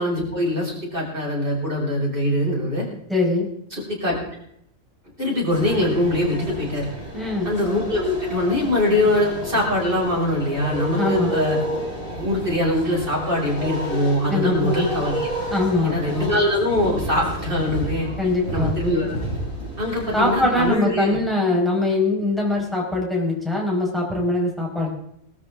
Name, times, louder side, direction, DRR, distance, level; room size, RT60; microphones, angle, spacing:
voice 1, 0.0-2.8 3.7-4.2 5.2-6.9 7.4-11.6 12.2-15.3 15.8-18.1 18.5-19.1 19.8-21.2, left 1 dB, 40° right, -4 dB, 5.8 m, -22 dB
voice 2, 3.1-3.5 7.1-7.5 11.0-11.3 14.3-14.8 15.5-15.9 18.2-18.8 20.1-24.9, left 2 dB, ahead, -3 dB, 4.6 m, -22 dB
sound 1, 5.5-20.7, equal, 50° left, 7.9 m, -31 dB
20.0 x 13.5 x 3.6 m, 0.73 s
omnidirectional pair, 1.4 m